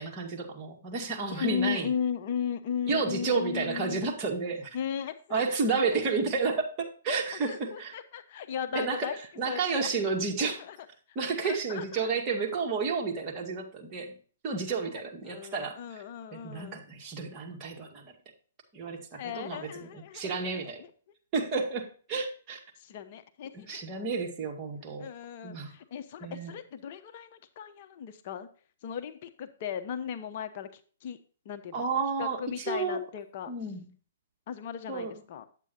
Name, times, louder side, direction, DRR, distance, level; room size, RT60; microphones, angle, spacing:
voice 1, 0.0-1.9 2.9-4.8 5.3-7.9 8.7-10.6 11.2-14.1 14.4-16.0 16.3-18.1 18.7-20.8 21.3-22.6 23.5-25.1 25.4-25.7 26.2-26.5 31.7-33.0 33.5-33.8 34.9-35.1, right 4 dB, 25° right, 0 dB, 2.0 m, -31 dB
voice 2, 1.3-4.1 4.7-5.4 5.7-6.2 7.4-9.2 9.5-9.9 10.4-10.8 11.4-12.1 15.2-16.8 19.1-20.7 22.8-23.9 25.0-28.5 28.8-31.2 31.4-31.9 32.2-33.5 34.5-35.5, left 8 dB, 45° left, 9 dB, 0.8 m, -36 dB
9.0 x 8.2 x 2.8 m, 0.41 s
hypercardioid pair, 140°, 0 cm